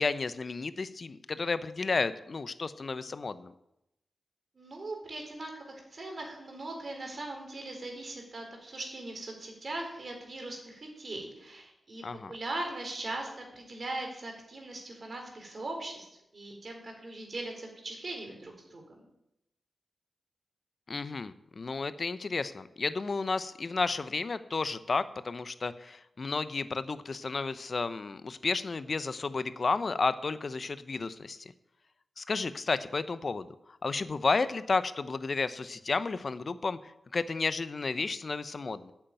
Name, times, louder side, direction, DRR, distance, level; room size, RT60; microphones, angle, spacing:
voice 1, 0.0-3.5 12.0-12.3 20.9-31.4 32.2-33.5 33.8-38.9, left 4 dB, 55° left, 14 dB, 0.6 m, -32 dB
voice 2, 4.5-12.0 12.3-16.1 16.3-19.1, right 2 dB, 55° right, 2 dB, 4.1 m, -40 dB
8.4 x 7.9 x 9.0 m, 0.86 s
cardioid pair, 45°, 0 cm